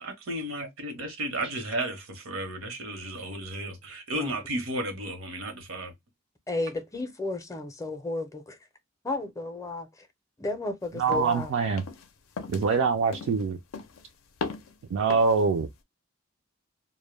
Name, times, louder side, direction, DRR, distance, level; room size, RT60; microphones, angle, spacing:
voice 1, 0.0-5.9, right 1 dB, 85° right, 0.8 m, -33 dB
voice 2, 6.5-8.6 9.0-10.1 10.4-11.5, left 2 dB, 15° left, 0.5 m, -33 dB
voice 3, 11.0-11.8 12.5-13.6 14.9-15.7, right 5 dB, 65° right, 0.3 m, -24 dB
sound 1, 11.1-11.4 11.8-12.1 12.4-12.7 13.1-13.5 13.7-14.1 14.4-14.7 15.1-15.4, left 5 dB, 80° left, 0.4 m, -37 dB
2.1 x 2.1 x 3.0 m
head